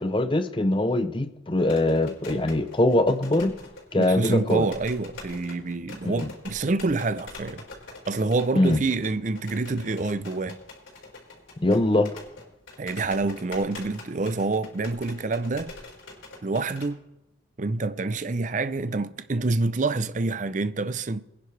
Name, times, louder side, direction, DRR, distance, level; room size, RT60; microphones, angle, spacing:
voice 1, 0.0-3.5 3.9-4.7 6.0-6.3 8.5-8.8 11.6-12.1, left 1 dB, 25° left, 0.6 m, -22 dB
sound 1, 1.6-16.9, left 2 dB, 85° left, 4.4 m, -45 dB
voice 2, 3.9-7.7 8.1-10.6 12.8-15.7 16.4-17.0 17.6-21.2, right 3 dB, 40° right, 0.5 m, -27 dB
23.0 x 10.5 x 3.3 m
head